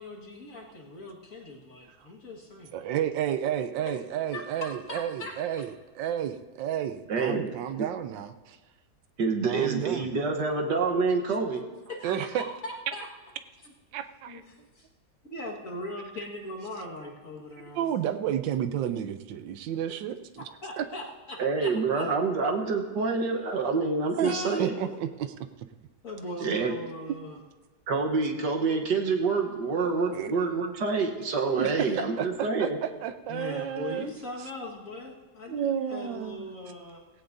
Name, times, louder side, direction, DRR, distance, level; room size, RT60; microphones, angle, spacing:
voice 1, 0.0-2.7 4.3-5.7 11.9-13.1 14.3-14.9 15.3-18.2 20.4-22.1 24.2-24.7 26.0-27.4 33.3-37.0, left 1 dB, 45° left, -2 dB, 2.0 m, -40 dB
voice 2, 2.7-8.6 9.4-10.2 12.0-12.4 13.9-14.4 17.7-20.4 20.8-20.9 24.2-25.3 30.1-30.3 31.6-31.9 32.2-34.1 35.5-36.4, right 10 dB, 85° right, 10 dB, 1.3 m, -31 dB
voice 3, 7.1-7.5 7.8-7.9 9.2-11.6 21.4-24.8 26.4-26.7 27.9-32.8, right 4 dB, 70° right, 2 dB, 1.8 m, -27 dB
17.5 x 16.0 x 2.7 m, 1.2 s
omnidirectional pair, 2.0 m